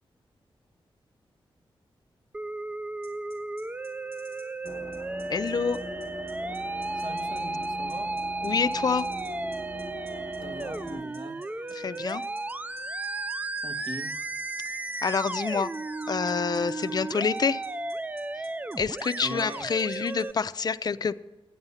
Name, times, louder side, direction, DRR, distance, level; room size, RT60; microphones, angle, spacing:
Musical instrument, 2.3-20.3, right 2 dB, 15° right, 0.3 m, -34 dB
sound 1, 3.0-20.3, right 2 dB, 80° right, 3.4 m, -55 dB
sound 2, 4.6-11.0, left 1 dB, 30° left, 0.9 m, -42 dB
voice 1, 5.3-5.8 8.4-9.1 11.7-12.2 15.0-15.7 16.1-17.6 18.4-18.5 18.8-21.2, left 5 dB, 45° left, 12 dB, 0.5 m, -27 dB
voice 2, 6.9-8.1 10.4-11.4 13.6-14.2 19.2-19.7, right 1 dB, 60° right, 5 dB, 1.5 m, -40 dB
11.5 x 9.5 x 5.6 m, 1.1 s
cardioid pair, 80°, 9 cm